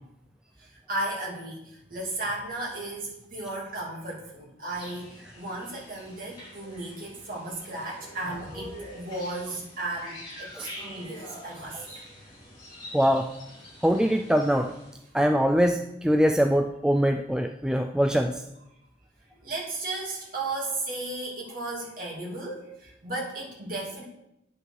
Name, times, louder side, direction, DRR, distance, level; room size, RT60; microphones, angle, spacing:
voice 1, 0.6-1.6 1.9-12.0 19.4-24.0, right 2 dB, 45° right, -3 dB, 2.8 m, -35 dB
sound 1, 4.7-14.9, left 1 dB, 20° left, 2.9 m, -45 dB
voice 2, 12.9-13.3 13.8-14.7 15.1-18.4, equal, 5° right, 4 dB, 0.3 m, -23 dB
9.0 x 5.5 x 6.3 m, 0.82 s
head